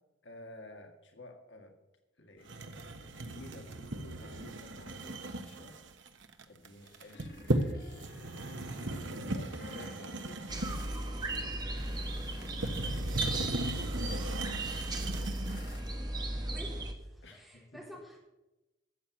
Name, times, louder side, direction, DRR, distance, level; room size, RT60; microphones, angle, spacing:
voice 1, 0.2-1.7 2.2-5.8 6.5-8.1 9.3-11.5 15.2-15.5 17.2-17.6, left 1 dB, 75° left, 5 dB, 1.8 m, -53 dB
sound 1, 2.5-15.8, right 2 dB, 80° right, 1.2 m, -37 dB
sound 2, 6.8-13.0 13.3-16.6, left 2 dB, 50° left, 1.7 m, -53 dB
sound 3, 10.5-16.9, right 1 dB, 20° right, 1.3 m, -36 dB
voice 2, 16.4-18.2, equal, ahead, -4 dB, 3.9 m, -50 dB
13.5 x 7.8 x 7.1 m, 0.98 s
head